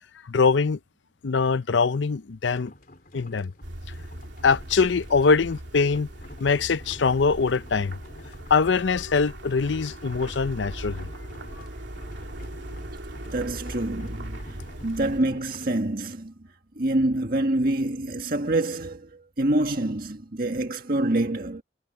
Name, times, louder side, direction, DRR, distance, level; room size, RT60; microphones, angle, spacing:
voice 1, 0.3-0.8 1.2-2.7 3.1-3.5 4.4-6.1 6.4-8.0 8.5-11.1, left 5 dB, 75° left, 0.6 m, -23 dB
sound 1, 2.5-15.8, left 1 dB, 50° left, 3.9 m, -49 dB
sound 2, 3.6-15.2, right 1 dB, 75° right, 2.8 m, -39 dB
voice 2, 13.3-14.6 14.8-16.3 16.7-21.6, right 1 dB, 50° right, 1.7 m, -26 dB
head